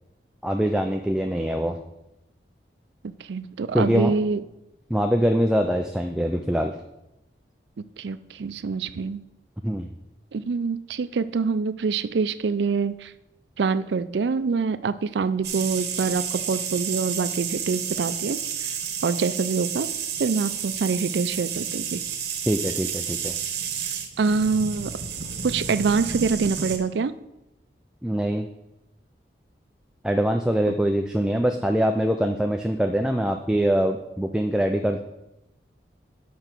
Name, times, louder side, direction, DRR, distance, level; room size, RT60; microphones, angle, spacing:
voice 1, 0.4-1.8 3.7-4.1 4.9-6.7 9.6-9.9 22.5-23.4 28.0-28.5 30.0-35.0, equal, 5° right, 4 dB, 0.3 m, -23 dB
voice 2, 3.0-4.4 8.0-9.2 10.3-13.1 13.6-18.4 19.0-19.9 20.2-22.0 24.2-24.9 25.4-27.1, right 4 dB, 80° right, 13 dB, 0.4 m, -25 dB
sound 1, 15.4-26.8, right 7 dB, 65° right, 1.1 m, -31 dB
6.9 x 5.5 x 6.0 m, 0.90 s
head